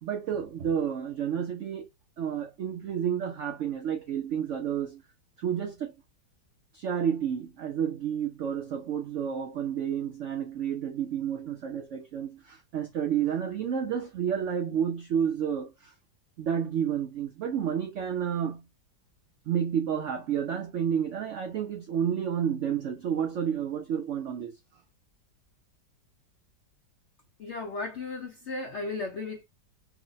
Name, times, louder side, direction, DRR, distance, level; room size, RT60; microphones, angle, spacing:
voice 1, 0.0-1.9 2.2-5.0 5.4-5.9 6.7-15.9 16.4-18.6 19.5-24.5, right 8 dB, 80° right, 0.6 m, -30 dB
voice 2, 27.4-29.4, left 3 dB, 75° left, 0.6 m, -35 dB
3.1 x 2.1 x 3.9 m
omnidirectional pair, 2.0 m